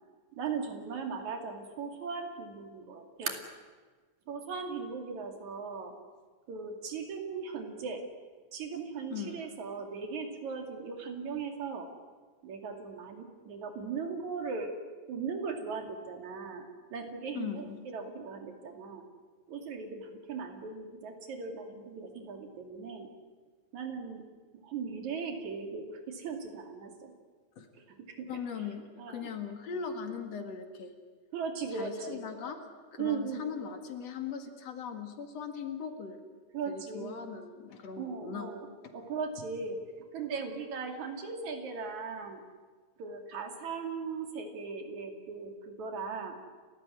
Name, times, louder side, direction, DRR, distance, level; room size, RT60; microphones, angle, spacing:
voice 1, 0.3-3.4 4.3-6.0 6.5-8.0 8.5-11.9 12.4-14.7 15.1-19.1 19.5-23.1 23.7-24.2 24.6-27.1 27.8-28.4 29.0-29.3 31.3-32.3 33.0-33.5 36.5-37.4 38.0-42.4 43.0-46.4, right 5 dB, 80° right, 5 dB, 3.8 m, -38 dB
voice 2, 9.1-9.4 17.3-17.8 27.6-27.7 28.3-30.9 31.8-32.6 32.9-36.2 36.7-38.5 38.8-38.9, left 7 dB, 60° left, 6 dB, 3.0 m, -39 dB
30.0 x 14.0 x 9.6 m, 1.4 s
omnidirectional pair, 3.3 m